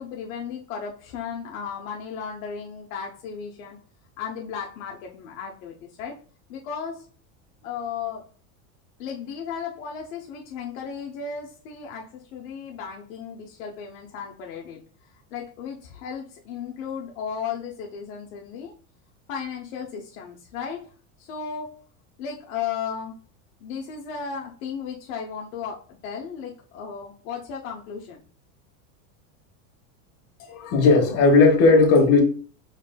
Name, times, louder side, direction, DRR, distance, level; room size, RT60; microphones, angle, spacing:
voice 1, 0.0-3.8 4.2-6.2 6.5-7.1 7.6-8.3 9.0-18.7 19.3-20.9 21.2-21.8 22.2-23.2 23.6-28.2, left 6 dB, 70° left, 0.8 m, -35 dB
voice 2, 30.5-32.2, left 3 dB, 35° left, 1.2 m, -16 dB
5.1 x 3.2 x 2.2 m
supercardioid pair, 150°, 42 cm